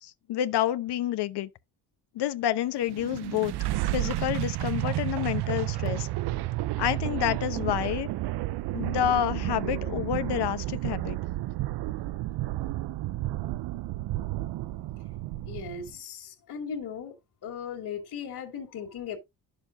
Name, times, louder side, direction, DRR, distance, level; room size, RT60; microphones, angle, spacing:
voice 1, 0.0-1.5 2.1-3.5 3.9-6.1 6.8-8.1 8.7-11.2, left 11 dB, 75° left, 0.9 m, -28 dB
sound 1, 2.8-15.9, right 16 dB, 75° right, 0.6 m, -31 dB
voice 2, 15.5-17.2 17.4-19.2, left 6 dB, 55° left, 2.5 m, -37 dB
11.0 x 6.9 x 2.6 m
cardioid pair, 120°, 40 cm